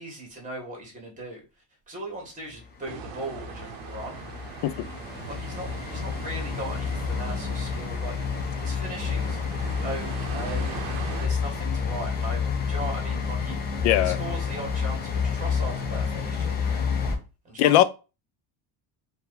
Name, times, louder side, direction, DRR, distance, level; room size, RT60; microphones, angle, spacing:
voice 1, 0.0-1.4 1.9-4.2 5.3-9.4 9.8-10.7 11.1-16.9 17.4-17.8, right 1 dB, 15° right, 1.6 m, -38 dB
sound 1, 2.9-17.2, left 6 dB, 20° left, 0.4 m, -29 dB
sound 2, 2.9-11.3, right 7 dB, 50° right, 0.7 m, -41 dB
sound 3, 6.6-17.2, left 3 dB, 5° left, 1.2 m, -44 dB
voice 2, 13.8-14.2 17.6-17.8, left 14 dB, 85° left, 0.6 m, -19 dB
4.5 x 2.6 x 3.9 m
cardioid pair, 180°, 46 cm